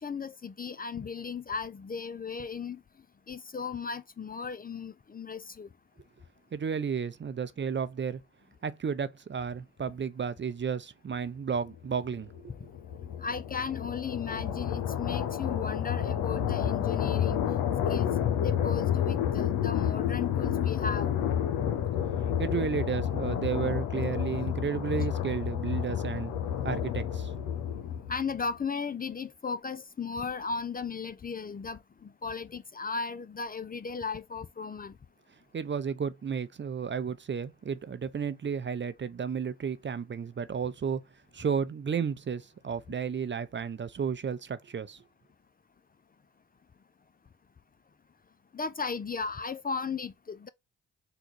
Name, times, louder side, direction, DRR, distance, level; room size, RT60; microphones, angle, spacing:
voice 1, 0.0-2.8 3.3-5.7 13.2-17.4 17.9-18.1 18.4-21.1 28.1-34.9 48.5-50.5, left 5 dB, 30° left, 0.5 m, -36 dB
voice 2, 6.5-8.2 8.6-12.5 22.2-26.3 26.6-27.3 35.5-41.0 41.3-45.0, right 6 dB, 35° right, 0.7 m, -33 dB
sound 1, 12.0-28.3, left 9 dB, 85° left, 0.7 m, -30 dB
3.9 x 2.3 x 4.6 m
hypercardioid pair, 45°, 32 cm